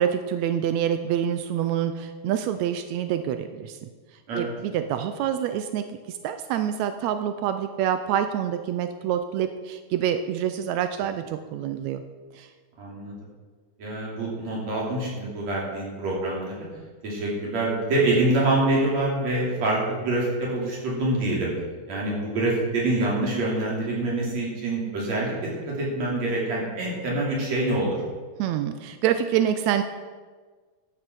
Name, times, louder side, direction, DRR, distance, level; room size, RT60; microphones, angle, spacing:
voice 1, 0.0-3.8 4.3-12.0 12.3-12.5 28.4-29.8, right 9 dB, 85° right, 9 dB, 1.5 m, -26 dB
voice 2, 12.8-13.2 13.8-16.6 17.0-21.5 21.9-28.0, right 2 dB, 55° right, -4 dB, 4.1 m, -26 dB
12.5 x 7.7 x 6.1 m, 1.5 s
omnidirectional pair, 3.8 m